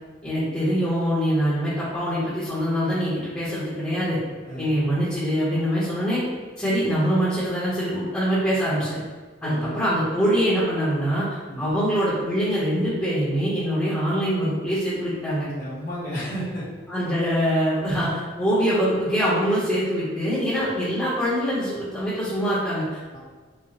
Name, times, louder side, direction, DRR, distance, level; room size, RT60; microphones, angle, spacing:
voice 1, 0.2-4.2 4.5-6.2 6.6-9.0 9.4-11.3 11.6-15.5 16.9-23.2, equal, 10° left, -11 dB, 0.9 m, -24 dB
voice 2, 9.4-9.7 11.5-11.7 15.6-16.6 23.1-23.2, equal, 45° left, -14 dB, 1.1 m, -32 dB
4.9 x 2.2 x 2.8 m, 1.4 s
head